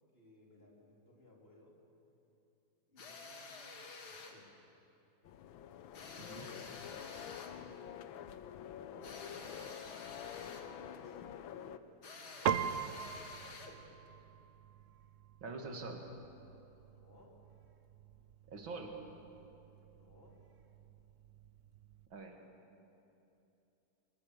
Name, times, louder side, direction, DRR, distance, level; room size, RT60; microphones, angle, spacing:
voice 1, 0.1-1.8 2.9-4.6 8.9-9.9 10.3-13.2 13.6-14.0 16.9-17.4 19.9-20.4, left 2 dB, 30° left, -2 dB, 3.6 m, -61 dB
sound 1, 3.0-4.4 5.9-7.6 9.0-10.8 12.0-13.8, left 4 dB, 60° left, 2.2 m, -50 dB
sound 2, 5.2-11.8, left 9 dB, 90° left, 1.6 m, -48 dB
voice 2, 6.2-6.5 15.4-16.0 18.5-19.0 22.1-22.4, right 3 dB, 80° right, 2 dB, 2.9 m, -45 dB
Piano, 12.5-22.1, right 8 dB, 65° right, 0.8 m, -43 dB
23.0 x 21.5 x 6.8 m, 2.8 s
omnidirectional pair, 2.1 m